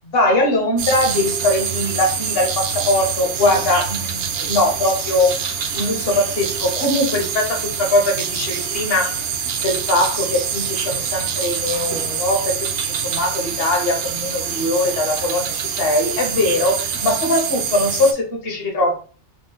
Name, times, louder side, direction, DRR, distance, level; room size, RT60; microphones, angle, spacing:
voice 1, 0.1-9.3 9.6-18.9, left 1 dB, 55° left, 1 dB, 1.1 m, -21 dB
sound 1, 0.8-18.1, right 7 dB, 65° right, 0.7 m, -25 dB
3.7 x 2.0 x 3.8 m, 0.40 s
omnidirectional pair, 1.2 m